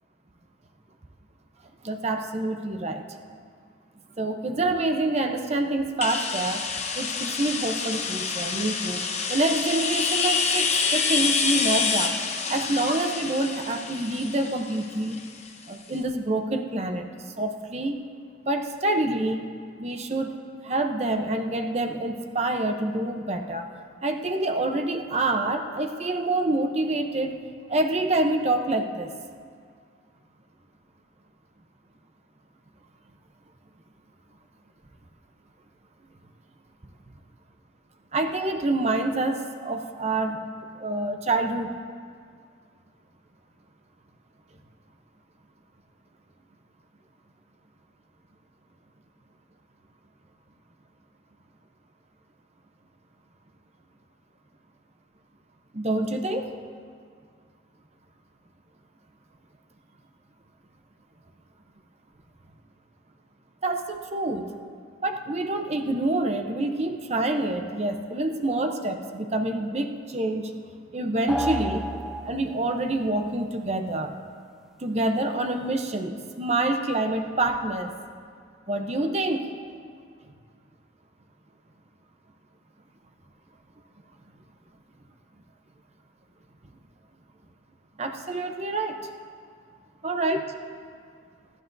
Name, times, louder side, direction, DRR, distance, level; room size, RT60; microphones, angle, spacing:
voice 1, 1.8-3.0 4.2-6.6 7.0-9.0 9.3-12.2 12.5-15.2 15.7-17.1 17.4-17.9 18.4-19.5 19.8-20.3 20.6-23.7 24.0-27.4 27.7-29.1 38.1-40.4 40.8-41.7 55.7-56.5 63.6-64.5 65.0-70.5 70.9-71.8 72.2-74.1 74.8-77.9 78.7-79.5 88.0-89.1 90.0-90.4, right 2 dB, 35° right, 5 dB, 0.7 m, -27 dB
sound 1, 6.0-15.6, left 5 dB, 35° left, 1.1 m, -27 dB
sound 2, 71.3-72.8, right 1 dB, ahead, 0.4 m, -31 dB
25.0 x 12.0 x 2.7 m, 2.1 s
head